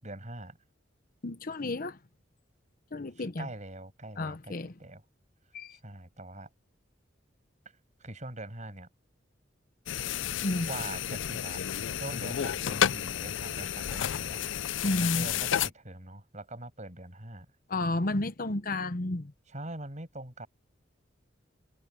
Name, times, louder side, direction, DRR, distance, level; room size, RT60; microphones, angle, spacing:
voice 1, 0.0-0.6 3.1-4.5 4.8-5.0 5.8-6.5 8.0-8.9 10.7-11.6 11.9-14.4 15.0-17.5 19.5-20.5, right 2 dB, 40° right, 7.7 m, -43 dB
voice 2, 1.2-2.0 2.9-3.5 4.2-4.7 5.5-5.8 10.4-10.7 14.8-15.3 17.7-19.3, left 2 dB, 50° left, 0.9 m, -31 dB
sound 1, 9.9-15.7, left 9 dB, 85° left, 0.5 m, -31 dB
head